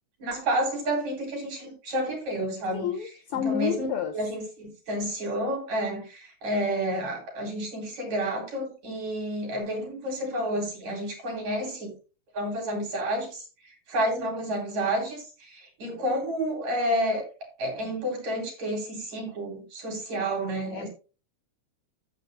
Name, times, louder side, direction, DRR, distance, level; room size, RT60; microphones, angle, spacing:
voice 1, 0.2-2.9 3.3-3.9 4.1-11.9 12.3-17.2 17.6-20.9, right 1 dB, 70° right, 5.3 m, -30 dB
voice 2, 2.7-4.1 20.7-20.9, left 8 dB, 75° left, 1.3 m, -30 dB
13.5 x 8.0 x 2.6 m
omnidirectional pair, 3.4 m